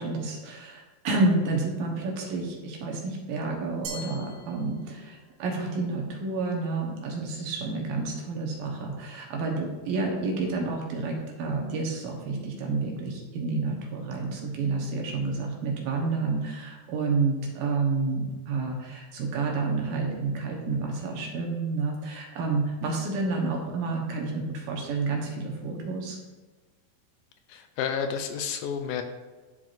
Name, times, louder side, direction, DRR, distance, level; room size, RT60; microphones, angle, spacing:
voice 1, 0.0-26.2, right 3 dB, 70° right, 0 dB, 2.7 m, -29 dB
Glass, 3.9-5.3, right 2 dB, 85° right, 3.1 m, -42 dB
voice 2, 27.5-29.0, left 7 dB, 80° left, 6 dB, 2.1 m, -30 dB
11.5 x 4.6 x 2.5 m, 1.2 s
omnidirectional pair, 4.5 m